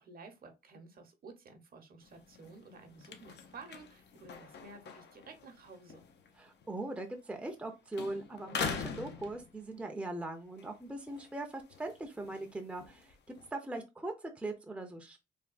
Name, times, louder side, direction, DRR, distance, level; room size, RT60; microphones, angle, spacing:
voice 1, 0.0-6.0, right 4 dB, 50° right, 0.8 m, -53 dB
sound 1, 2.0-7.7 7.9-10.0 10.4-13.5, left 6 dB, 60° left, 0.6 m, -44 dB
voice 2, 6.4-15.2, right 2 dB, 5° right, 0.6 m, -40 dB
3.4 x 2.3 x 2.4 m
cardioid pair, 90°, 20 cm